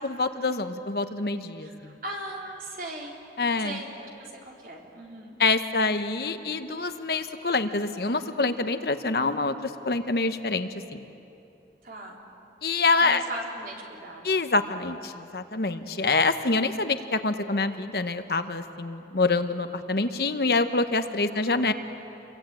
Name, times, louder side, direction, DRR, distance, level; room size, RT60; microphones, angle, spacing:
voice 1, 0.0-1.9 3.4-3.8 5.4-11.0 12.6-13.2 14.2-21.7, left 3 dB, 60° left, 9 dB, 1.0 m, -26 dB
voice 2, 1.6-3.2 3.6-5.4 11.8-12.2 13.0-14.4 21.3-21.7, right 1 dB, 50° right, -1 dB, 3.9 m, -39 dB
28.0 x 23.0 x 9.1 m, 2.9 s
head